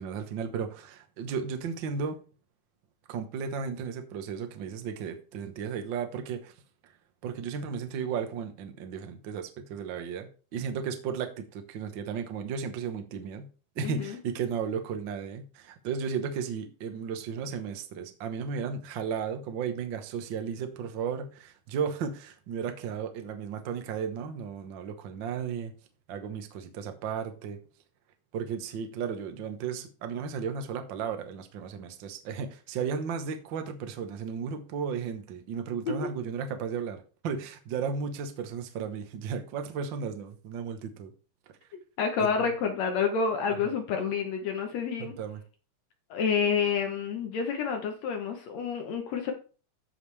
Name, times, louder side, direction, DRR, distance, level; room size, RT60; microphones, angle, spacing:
voice 1, 0.0-2.2 3.1-6.5 7.2-13.5 13.7-25.7 26.1-27.6 28.3-41.1 42.2-42.3 43.6-43.7 45.0-45.4, right 6 dB, 65° right, 7 dB, 1.2 m, -34 dB
voice 2, 13.8-14.2 35.9-36.1 42.0-45.1 46.1-49.3, left 6 dB, 65° left, 4 dB, 2.0 m, -29 dB
14.5 x 5.1 x 3.3 m, 0.37 s
omnidirectional pair, 3.6 m